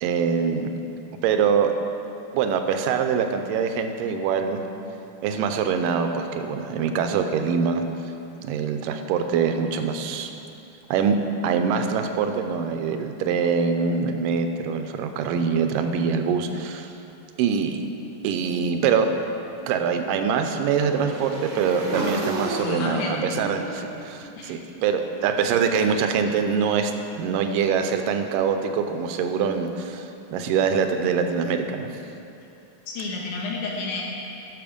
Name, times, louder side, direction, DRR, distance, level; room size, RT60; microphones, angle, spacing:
voice 1, 0.0-0.7 1.2-1.7 2.3-4.6 5.2-7.8 8.4-10.3 10.9-11.2 11.4-16.9 17.4-17.8 18.2-19.1 19.7-31.9, right 6 dB, 90° right, 7 dB, 2.3 m, -24 dB
Motorcycle / Engine, 19.0-25.1, right 1 dB, 60° right, 1.3 m, -34 dB
voice 2, 22.6-23.3 24.4-24.6 32.9-34.0, left 4 dB, 70° left, -2 dB, 2.5 m, -30 dB
10.5 x 6.4 x 5.1 m, 2.7 s
omnidirectional pair, 3.8 m